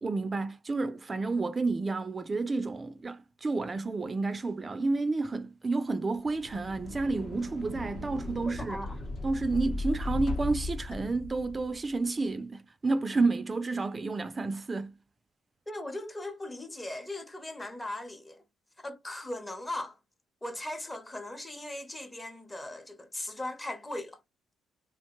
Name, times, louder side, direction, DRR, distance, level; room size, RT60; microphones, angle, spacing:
voice 1, 0.0-8.9 9.2-14.9, right 3 dB, 30° right, 0.3 m, -30 dB
sound 1, 6.2-11.8, left 2 dB, 55° left, 0.9 m, -37 dB
voice 2, 8.5-9.0 15.7-18.4 18.8-20.0 20.4-24.2, left 1 dB, 20° left, 0.7 m, -39 dB
2.9 x 2.1 x 2.9 m
supercardioid pair, 65°, 0 cm